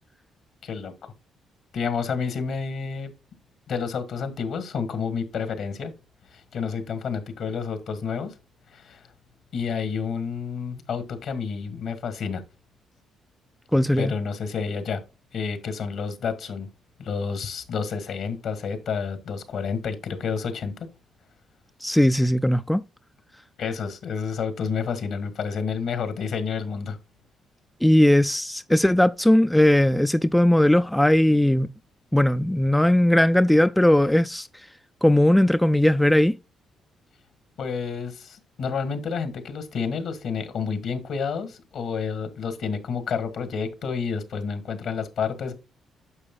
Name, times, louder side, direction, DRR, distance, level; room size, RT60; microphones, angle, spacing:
voice 1, 0.6-1.1 1.7-3.1 3.7-5.9 6.3-8.3 8.7-9.1 9.5-12.4 14.0-15.0 15.3-16.7 17.0-20.7 23.6-27.0 37.6-45.5, left 6 dB, 70° left, 1.6 m, -29 dB
voice 2, 13.7-14.1 21.8-22.8 27.8-31.7 32.1-34.5 35.0-36.4, left 1 dB, 5° left, 0.3 m, -18 dB
9.8 x 6.7 x 2.2 m
cardioid pair, 90°, 0 cm